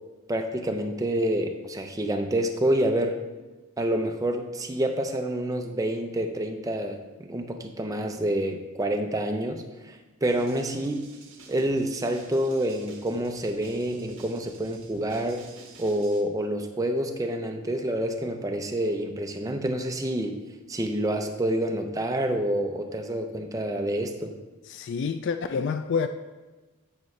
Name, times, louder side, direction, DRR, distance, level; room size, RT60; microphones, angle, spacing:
voice 1, 0.3-3.2 3.8-7.0 7.3-11.0 11.5-15.5 15.8-20.4 20.7-24.3, right 1 dB, 15° right, 4 dB, 0.5 m, -28 dB
sound 1, 10.3-16.2, right 3 dB, 70° right, 1.3 m, -49 dB
voice 2, 24.7-26.1, left 5 dB, 55° left, 9 dB, 0.3 m, -28 dB
9.3 x 4.8 x 3.2 m, 1.2 s
head